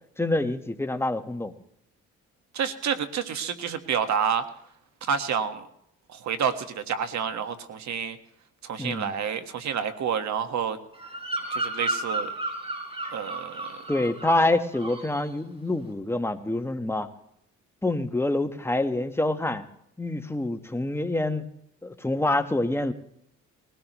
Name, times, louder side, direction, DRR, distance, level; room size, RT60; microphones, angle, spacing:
voice 1, 0.2-1.5 8.8-9.1 13.9-17.1 17.8-19.6 20.0-21.4 21.8-22.9, left 2 dB, 10° left, 7 dB, 1.2 m, -26 dB
voice 2, 2.5-4.4 5.1-5.7 6.1-8.2 8.6-10.8 11.5-12.3 13.1-13.8, right 7 dB, 65° right, 9 dB, 1.6 m, -29 dB
Bird vocalization bird call bird song, 10.9-14.5 14.7-15.2, right 1 dB, 20° right, 4.6 m, -32 dB
20.0 x 17.0 x 3.1 m, 0.74 s
cardioid pair, 90°, 30 cm